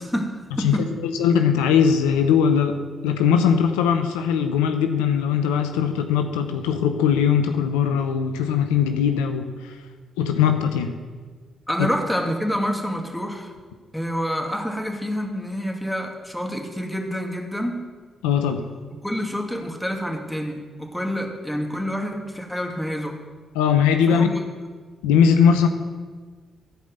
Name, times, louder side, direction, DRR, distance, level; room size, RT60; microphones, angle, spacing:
voice 1, 0.0-0.9 11.7-13.5 13.9-17.8 19.0-23.2 24.1-24.4, equal, 5° left, 2 dB, 2.4 m, -27 dB
voice 2, 0.6-2.8 3.0-9.8 10.2-10.9 18.2-18.6 23.5-24.3 25.0-25.7, left 7 dB, 85° left, 7 dB, 0.7 m, -20 dB
15.0 x 5.2 x 7.9 m, 1.5 s
hypercardioid pair, 45°, 0 cm